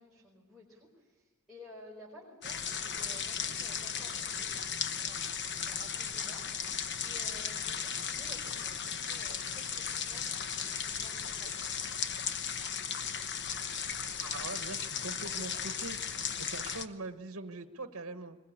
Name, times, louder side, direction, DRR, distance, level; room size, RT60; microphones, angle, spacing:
voice 1, 0.0-4.5 4.9-12.0, equal, ahead, -6 dB, 4.6 m, -54 dB
sound 1, 2.4-16.9, left 7 dB, 50° left, 1.0 m, -36 dB
voice 2, 14.2-18.4, right 3 dB, 60° right, 8 dB, 1.1 m, -42 dB
22.0 x 21.0 x 8.7 m, 1.2 s
head